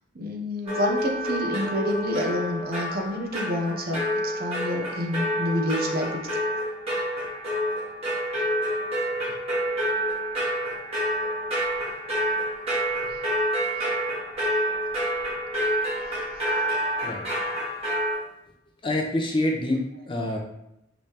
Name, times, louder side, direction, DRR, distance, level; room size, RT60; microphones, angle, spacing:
voice 1, 0.1-6.2, left 1 dB, 50° right, 2 dB, 0.7 m, -28 dB
sound 1, 0.6-18.1, equal, 30° right, 1.6 m, -28 dB
voice 2, 17.0-17.4 18.8-20.4, left 1 dB, 25° left, 1 dB, 0.6 m, -27 dB
5.0 x 3.2 x 2.8 m, 0.83 s
head